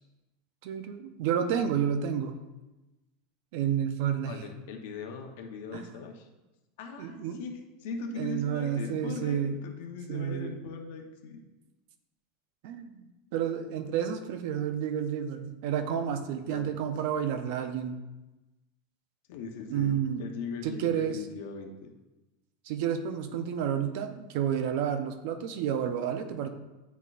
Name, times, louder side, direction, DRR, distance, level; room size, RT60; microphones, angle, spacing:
voice 1, 0.6-2.3 3.5-4.4 5.7-5.8 7.0-7.4 8.2-9.6 10.1-10.5 12.6-12.9 13.3-18.0 19.7-20.2 20.6-21.2 22.6-26.5, right 8 dB, 60° right, 8 dB, 0.6 m, -30 dB
voice 2, 4.2-6.3 6.8-7.5 7.8-11.4 16.3-16.7 19.3-21.9, left 4 dB, 70° left, 3 dB, 0.8 m, -40 dB
9.3 x 4.1 x 2.5 m, 1.1 s
supercardioid pair, 145°, 0 cm